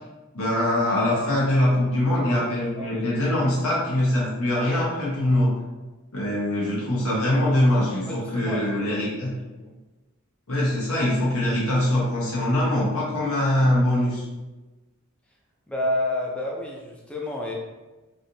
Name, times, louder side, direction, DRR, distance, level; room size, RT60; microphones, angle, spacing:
voice 1, 0.3-5.5 6.1-9.3 10.5-14.2, left 1 dB, 80° left, -6 dB, 0.9 m, -23 dB
voice 2, 2.3-3.1 8.1-9.2 9.6-9.7 15.7-17.5, left 1 dB, 5° left, -2 dB, 0.4 m, -30 dB
3.2 x 2.5 x 2.7 m, 1.1 s
head